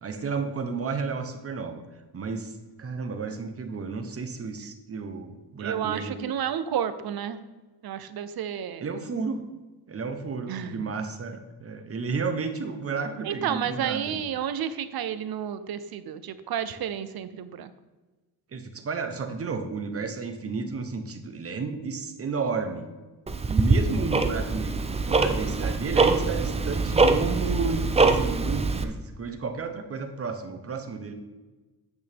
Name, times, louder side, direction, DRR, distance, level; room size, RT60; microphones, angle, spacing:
voice 1, 0.0-1.8 2.1-6.2 8.8-9.4 9.9-14.2 18.5-22.9 23.5-31.1, right 4 dB, 35° right, 6 dB, 0.9 m, -32 dB
voice 2, 5.6-7.4 7.8-8.9 10.5-10.8 13.2-17.7, right 9 dB, 65° right, 12 dB, 0.7 m, -31 dB
Tick-tock, 23.3-28.8, right 3 dB, 15° right, 0.4 m, -23 dB
9.4 x 8.3 x 3.5 m, 1.2 s
wide cardioid pair, 165°, 40 cm